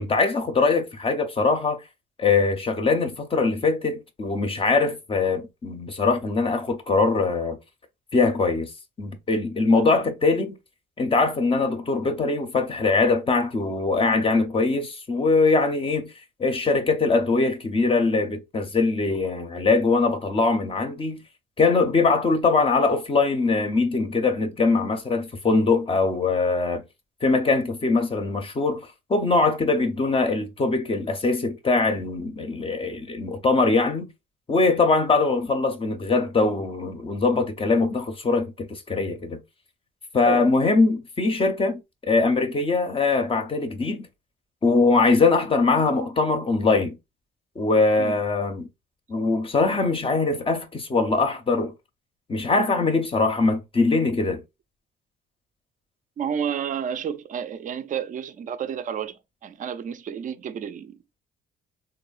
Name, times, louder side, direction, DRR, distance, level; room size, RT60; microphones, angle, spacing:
voice 1, 0.0-1.8 2.2-7.6 8.1-8.7 9.0-10.6 11.0-16.1 16.4-21.2 21.6-26.8 27.2-28.8 29.1-34.1 34.5-39.4 40.1-41.8 42.1-44.1 44.6-47.0 47.6-48.7 49.1-51.7 52.3-54.4, left 3 dB, 25° left, 0.5 m, -22 dB
voice 2, 56.2-61.0, right 8 dB, 40° right, 0.4 m, -31 dB
3.0 x 2.0 x 2.3 m
cardioid pair, 90°, 20 cm